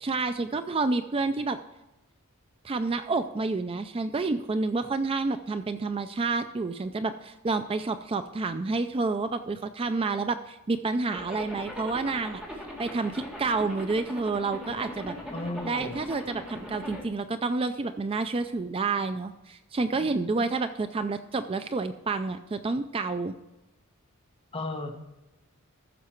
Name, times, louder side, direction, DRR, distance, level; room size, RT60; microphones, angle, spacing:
voice 1, 0.0-1.6 2.6-12.4 12.8-15.2 15.7-23.4, right 3 dB, 25° right, 10 dB, 0.4 m, -29 dB
Zipper (clothing), 11.1-17.0, left 1 dB, 5° right, 2.3 m, -40 dB
voice 2, 15.3-16.0 24.5-25.1, left 2 dB, 25° left, 2 dB, 1.4 m, -34 dB
14.5 x 6.6 x 4.5 m, 0.99 s
head